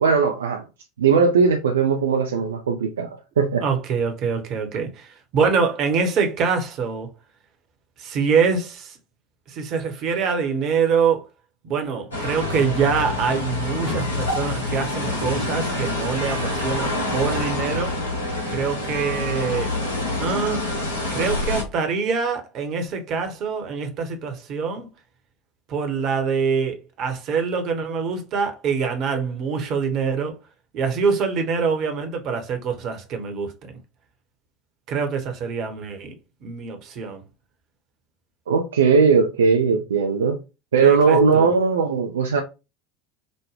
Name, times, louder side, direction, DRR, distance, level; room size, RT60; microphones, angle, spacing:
voice 1, 0.0-0.6 1.0-3.1 3.4-3.6 38.5-40.4 40.7-42.4, right 5 dB, 75° right, 0.4 m, -18 dB
voice 2, 3.6-7.1 8.0-9.0 9.5-11.3 11.6-18.0 18.5-19.7 20.2-20.7 21.1-24.9 25.7-30.4 30.7-33.5 34.9-36.1 36.4-37.2 40.8-41.5, right 5 dB, 45° right, 0.9 m, -24 dB
sound 1, 12.1-21.6, left 2 dB, 80° left, 1.1 m, -26 dB
5.1 x 2.1 x 3.2 m
figure-of-eight pair, 70°, 0 cm